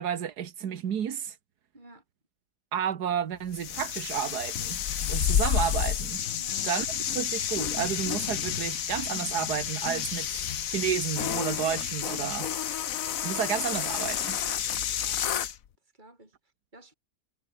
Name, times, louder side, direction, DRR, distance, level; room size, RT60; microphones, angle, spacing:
voice 1, 0.0-1.4 2.7-4.8 5.1-6.2 6.6-12.5 13.2-14.4, right 8 dB, 90° right, 1.8 m, -31 dB
voice 2, 1.7-2.0 6.3-6.6 14.4-15.5 15.8-16.9, right 1 dB, 30° right, 5.5 m, -53 dB
sound 1, 3.5-15.6, left 9 dB, 60° left, 1.4 m, -30 dB
omnidirectional pair, 1.6 m